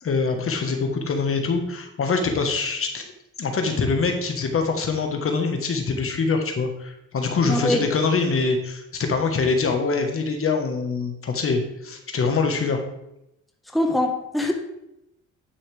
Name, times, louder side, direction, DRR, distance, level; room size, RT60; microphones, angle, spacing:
voice 1, 0.0-3.1 3.4-12.8, left 4 dB, 45° left, 5 dB, 1.3 m, -24 dB
voice 2, 7.4-7.8 13.7-14.5, left 1 dB, ahead, 2 dB, 1.2 m, -23 dB
9.8 x 5.6 x 3.4 m, 0.83 s
cardioid pair, 90°, 30 cm